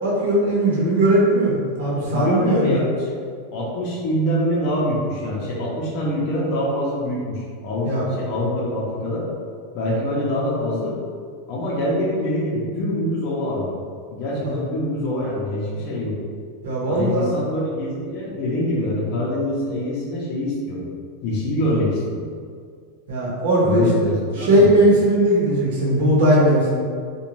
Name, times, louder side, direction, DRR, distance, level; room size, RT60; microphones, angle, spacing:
voice 1, 0.0-2.7 7.8-8.1 14.5-14.6 16.6-17.3 23.1-24.1 24.4-26.8, right 1 dB, 75° right, -5 dB, 0.8 m, -18 dB
voice 2, 2.1-3.2 3.5-9.2 9.7-11.0 11.5-13.7 14.1-16.2 16.9-20.8 21.2-22.3 23.6-24.8, left 1 dB, 45° left, -6 dB, 0.6 m, -24 dB
2.5 x 2.2 x 3.0 m, 2.1 s
supercardioid pair, 145°, 0 cm